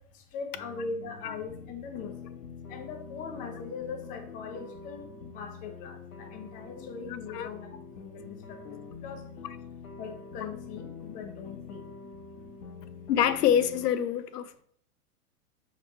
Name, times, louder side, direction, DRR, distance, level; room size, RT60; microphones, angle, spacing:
voice 1, 0.3-2.1 2.7-5.1 5.3-8.6 9.0-9.2 10.0-11.8, left 5 dB, 20° left, 0.5 m, -40 dB
sound 1, 0.5-13.9, left 5 dB, 60° left, 0.9 m, -45 dB
voice 2, 13.1-14.6, left 9 dB, 85° left, 0.6 m, -26 dB
4.8 x 2.8 x 3.4 m
hypercardioid pair, 120°, 46 cm